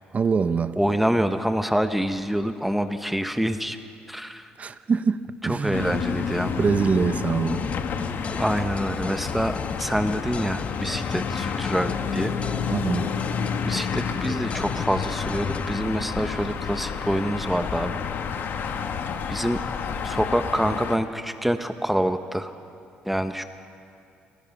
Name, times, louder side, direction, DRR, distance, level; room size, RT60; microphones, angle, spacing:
voice 1, 0.1-0.8 4.6-6.0 6.6-7.7 12.7-13.1, right 5 dB, 40° right, 0.9 m, -24 dB
voice 2, 0.8-3.8 4.1-4.5 5.4-6.5 8.4-12.3 13.6-18.0 19.3-19.6 20.0-22.5 23.1-23.4, equal, 5° right, 1.0 m, -26 dB
sound 1, 5.7-21.0, left 6 dB, 60° left, 1.5 m, -30 dB
sound 2, 7.5-15.8, left 4 dB, 30° left, 0.6 m, -36 dB
29.5 x 18.0 x 5.4 m
cardioid pair, 80°, 4 cm